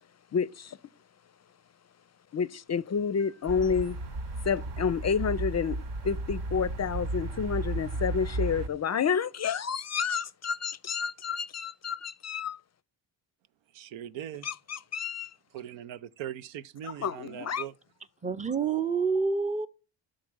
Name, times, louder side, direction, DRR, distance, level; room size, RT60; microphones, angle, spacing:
voice 1, 0.3-0.8 2.3-4.0 4.4-5.8 6.0-12.6 14.4-15.3 16.8-17.6, left 6 dB, 35° left, 0.5 m, -30 dB
sound 1, 3.5-8.7, right 2 dB, 60° right, 1.0 m, -34 dB
voice 2, 13.7-14.5 15.5-17.7, right 11 dB, 80° right, 0.6 m, -40 dB
voice 3, 18.2-19.7, right 5 dB, 15° right, 0.6 m, -27 dB
11.5 x 3.8 x 6.1 m
supercardioid pair, 65°, 46 cm